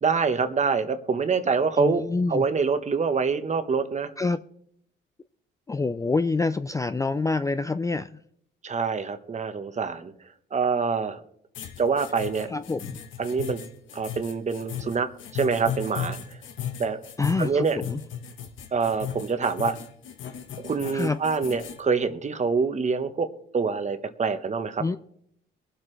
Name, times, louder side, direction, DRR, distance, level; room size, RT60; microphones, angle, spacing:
voice 1, 0.0-2.0 2.3-4.1 8.6-10.1 10.5-11.2 11.8-12.5 13.2-13.6 13.9-16.4 16.8-17.0 17.4-17.8 18.7-19.8 20.6-23.3 23.5-24.8, right 5 dB, 35° right, 9 dB, 1.1 m, -25 dB
voice 2, 1.8-2.5 4.2-4.4 5.7-8.2 12.5-13.0 17.2-18.0 20.9-21.2 24.8-25.0, left 3 dB, 15° left, 12 dB, 0.3 m, -26 dB
sound 1, 11.5-21.8, left 8 dB, 75° left, 1.1 m, -36 dB
22.5 x 7.6 x 3.3 m, 0.70 s
cardioid pair, 90°, 20 cm